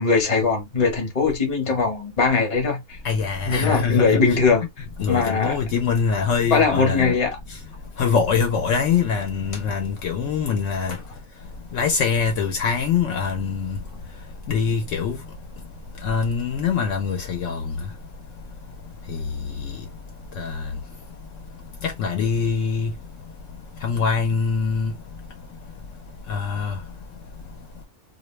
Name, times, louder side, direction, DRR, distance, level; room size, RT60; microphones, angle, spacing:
voice 1, 0.0-3.0 3.4-4.6 5.1-5.6 6.5-7.4, left 4 dB, 30° left, 0.8 m, -20 dB
voice 2, 3.0-4.2 5.0-7.1 8.0-11.0 11.7-13.8 14.5-15.2 16.0-17.8 19.1-19.4 19.6-19.7 20.4-20.7 21.8-22.9 23.8-24.9 26.3-26.8, left 6 dB, 70° left, 0.9 m, -23 dB
2.4 x 2.1 x 3.0 m
omnidirectional pair, 1.4 m